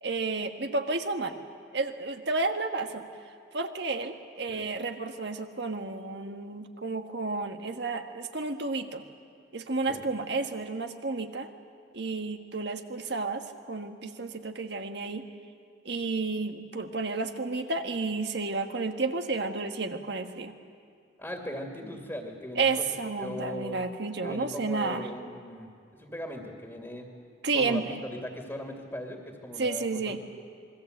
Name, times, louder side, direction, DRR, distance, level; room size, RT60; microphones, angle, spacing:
voice 1, 0.0-1.4 1.7-3.0 3.5-9.0 9.5-11.5 11.9-15.3 15.8-20.5 22.6-25.1 27.4-28.0 29.6-30.2, right 3 dB, 60° right, 5 dB, 1.6 m, -31 dB
voice 2, 21.2-23.8 24.2-25.7 26.0-27.1 27.5-30.2, left 1 dB, 10° left, 1 dB, 2.4 m, -39 dB
27.0 x 21.5 x 8.0 m, 2.4 s
head